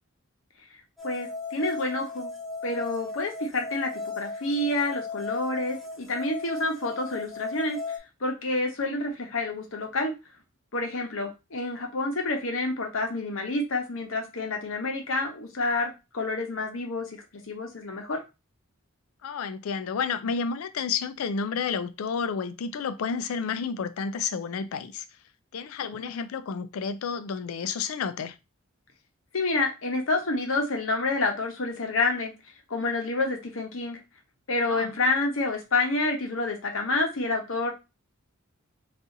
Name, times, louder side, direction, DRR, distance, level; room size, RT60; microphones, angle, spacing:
voice 1, 1.0-2.3 2.6-3.9 4.2-10.1 10.7-18.2 26.0-26.2 29.3-32.3 32.7-34.0 34.5-37.7, left 2 dB, 70° left, 0.8 m, -28 dB
sound 1, 1.0-8.0, left 3 dB, ahead, 0.5 m, -37 dB
voice 2, 19.2-25.0 25.5-28.3 34.7-34.9, left 6 dB, 85° left, 0.4 m, -31 dB
2.7 x 2.5 x 3.7 m
head